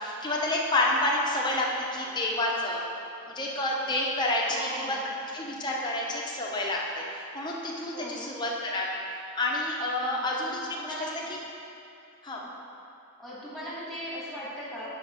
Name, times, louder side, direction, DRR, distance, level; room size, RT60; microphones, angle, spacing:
voice 1, 0.0-2.8 3.3-5.0 5.3-7.0 7.3-9.0 9.3-11.1 12.2-12.4, left 1 dB, 20° left, -3 dB, 0.9 m, -29 dB
voice 2, 4.5-5.1 7.9-8.4 10.0-10.3 10.8-11.3 12.4-12.6 13.2-14.9, equal, ahead, -9 dB, 1.7 m, -39 dB
5.8 x 5.6 x 5.7 m, 2.6 s
head